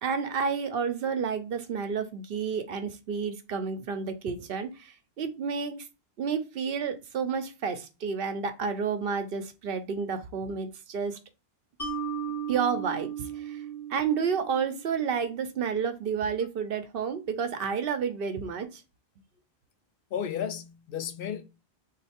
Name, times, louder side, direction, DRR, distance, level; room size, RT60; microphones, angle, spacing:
voice 1, 0.0-5.9 6.2-11.2 12.5-13.6 13.9-18.8, right 6 dB, 65° right, 0.7 m, -30 dB
Mallet percussion, 11.8-15.1, right 7 dB, 15° left, 1.7 m, -36 dB
voice 2, 20.1-21.4, left 8 dB, 65° left, 0.7 m, -33 dB
3.1 x 2.5 x 4.2 m
omnidirectional pair, 1.1 m